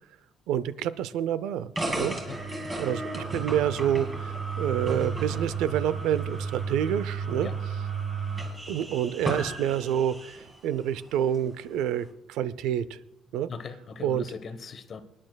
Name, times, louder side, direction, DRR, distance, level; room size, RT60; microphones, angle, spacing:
voice 1, 0.5-1.7 2.0-2.2 2.8-7.5 8.7-13.0 13.3-13.5 14.0-14.2, right 10 dB, 90° right, 16 dB, 0.4 m, -28 dB
sound 1, 1.8-10.5, right 4 dB, 20° right, 2.1 m, -33 dB
voice 2, 1.9-2.4 7.4-7.5 13.5-15.0, left 5 dB, 45° left, 10 dB, 0.9 m, -39 dB
28.0 x 9.9 x 2.3 m, 0.85 s
cardioid pair, 115°, 0 cm